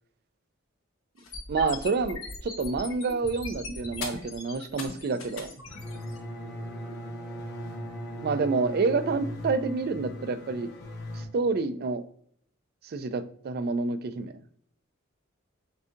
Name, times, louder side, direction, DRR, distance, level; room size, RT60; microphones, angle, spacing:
sound 1, 1.2-6.2, left 3 dB, 85° left, 1.1 m, -39 dB
voice 1, 1.5-5.5 8.2-10.7 11.1-12.0 12.8-14.3, right 4 dB, 50° right, 12 dB, 0.3 m, -28 dB
sound 2, 5.7-11.2, left 2 dB, 55° left, 0.9 m, -41 dB
Bowed string instrument, 5.8-10.0, right 2 dB, 5° right, 0.7 m, -40 dB
6.8 x 2.7 x 2.5 m, 0.65 s
head